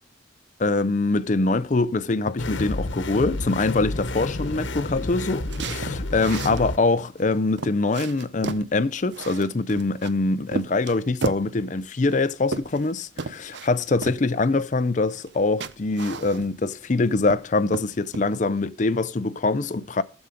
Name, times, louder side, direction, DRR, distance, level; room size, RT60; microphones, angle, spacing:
voice 1, 0.6-20.0, left 3 dB, 40° left, 0.5 m, -24 dB
sound 1, 2.4-6.8, left 2 dB, 70° left, 1.1 m, -30 dB
sound 2, 5.5-6.6 7.2-7.3 7.6-8.7 9.1-10.1 10.5-11.5 12.1-12.9 13.2-13.7 14.0-14.2 15.2-15.4 15.6-16.7 17.0-17.5 17.7-18.3, right 4 dB, 60° right, 0.6 m, -33 dB
14.0 x 7.1 x 5.1 m
head